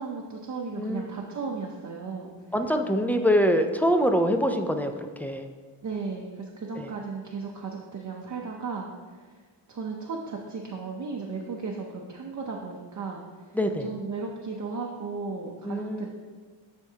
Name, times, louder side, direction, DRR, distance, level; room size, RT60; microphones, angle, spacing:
voice 1, 0.0-2.3 5.8-9.3 9.7-13.6 13.8-16.1, right 4 dB, 40° right, 0 dB, 0.6 m, -35 dB
voice 2, 2.5-5.5 6.8-6.9 13.5-13.9 15.6-16.1, equal, 5° left, 5 dB, 0.3 m, -24 dB
10.5 x 4.4 x 2.8 m, 1.5 s
wide cardioid pair, 110°, 48 cm